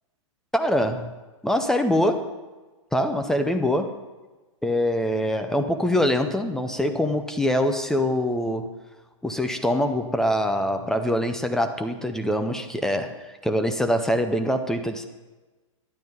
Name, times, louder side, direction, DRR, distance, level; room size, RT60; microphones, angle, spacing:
voice 1, 0.5-1.1 1.4-2.3 2.9-3.9 4.6-8.7 9.2-13.1 13.4-15.0, left 1 dB, 5° left, 7 dB, 0.5 m, -24 dB
13.0 x 12.0 x 5.3 m, 1.2 s
hypercardioid pair, 150°, 17 cm